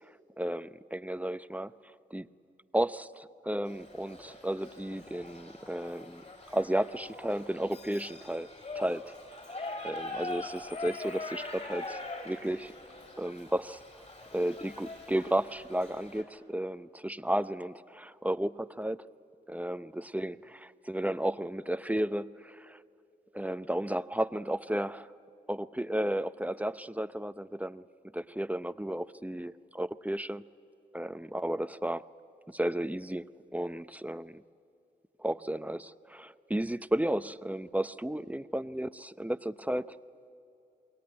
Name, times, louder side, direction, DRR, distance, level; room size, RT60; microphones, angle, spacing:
voice 1, 0.4-1.7 2.1-2.3 2.7-6.2 6.5-8.5 8.7-9.1 9.8-12.7 13.2-13.8 14.3-19.0 19.5-22.8 23.3-25.1 25.5-27.8 28.1-30.4 30.9-32.0 32.5-34.4 35.2-40.0, right 1 dB, 5° right, 13 dB, 0.7 m, -33 dB
Shout / Livestock farm animals working animals, 3.7-16.2, left 2 dB, 35° left, 5.8 m, -43 dB
27.5 x 21.5 x 9.6 m, 2.7 s
cardioid pair, 55°, 20 cm